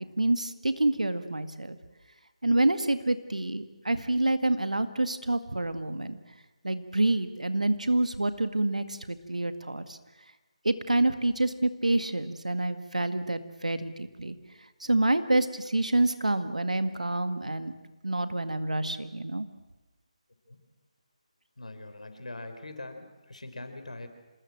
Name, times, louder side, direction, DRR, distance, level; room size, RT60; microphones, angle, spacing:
voice 1, 0.0-1.8 2.4-6.2 6.6-10.0 10.6-14.4 14.8-17.7 18.0-19.5, right 2 dB, 80° right, 10 dB, 1.9 m, -27 dB
voice 2, 21.6-24.1, left 2 dB, 70° left, 8 dB, 4.1 m, -42 dB
27.0 x 20.5 x 7.8 m, 1.1 s
figure-of-eight pair, 150°, 4 cm